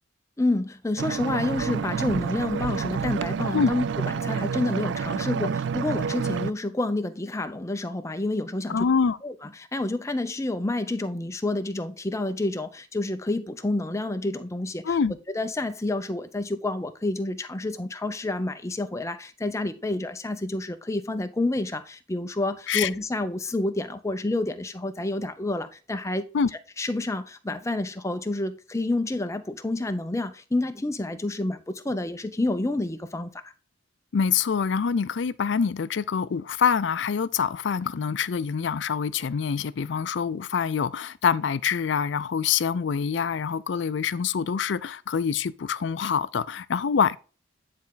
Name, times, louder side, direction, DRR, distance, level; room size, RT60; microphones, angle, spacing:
voice 1, 0.4-8.9 9.2-15.0 15.3-26.3 26.8-33.5, left 2 dB, 15° left, 0.6 m, -29 dB
sound 1, 1.0-6.5, right 6 dB, 65° right, 0.3 m, -29 dB
voice 2, 8.7-9.2 14.8-15.1 22.7-22.9 26.3-26.5 34.1-47.2, left 6 dB, 70° left, 0.4 m, -25 dB
9.5 x 4.3 x 3.9 m
head